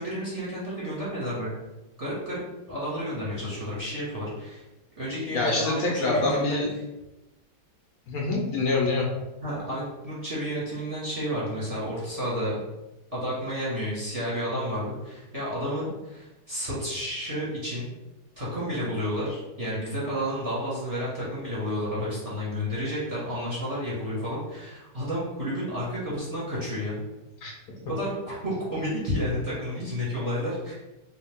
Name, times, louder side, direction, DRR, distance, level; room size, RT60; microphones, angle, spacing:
voice 1, 0.0-1.5 2.0-2.4 2.7-4.6 5.0-6.6 9.4-12.6 13.1-17.9 18.4-27.0 27.9-30.7, equal, 25° right, -7 dB, 1.2 m, -31 dB
voice 2, 5.3-6.7 8.1-9.1 27.4-27.5 29.8-29.9, left 3 dB, 65° left, -2 dB, 1.1 m, -25 dB
3.2 x 2.7 x 3.5 m, 0.98 s
omnidirectional pair, 1.8 m